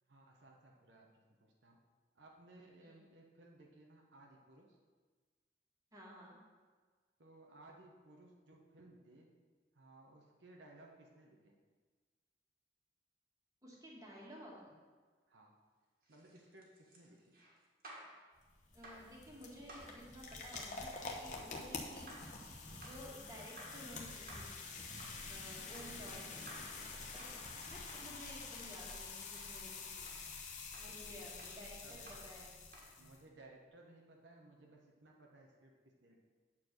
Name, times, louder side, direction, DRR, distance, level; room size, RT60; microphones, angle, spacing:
voice 1, 0.0-1.8 2.1-4.8 7.2-9.3 9.7-11.6 15.3-15.5 16.1-17.4 30.8-31.3 31.8-32.1 33.0-36.2, right 2 dB, 80° right, 0 dB, 1.1 m, -60 dB
voice 2, 5.9-6.4 13.6-14.7 18.7-22.5 22.8-24.6 25.2-26.5 27.1-30.1 30.7-32.5, equal, 20° right, -4 dB, 1.8 m, -54 dB
sound 1, 16.0-18.2 18.8-19.1 19.7-20.0 20.5-20.8 21.3-21.5 22.1-22.4 22.8-23.1 23.6-23.9 24.3-24.6 25.0-25.3 25.7-26.0 26.5-26.8 27.2-27.4 27.9-28.1 28.6-28.8 29.4-29.5 30.0-30.3 30.7-30.9 31.4-31.6 32.1-32.3 32.7-32.9, right 1 dB, 50° right, 1.8 m, -55 dB
sound 2, 18.3-33.2, left 4 dB, 40° left, 0.9 m, -48 dB
8.4 x 4.5 x 6.6 m, 1.4 s
head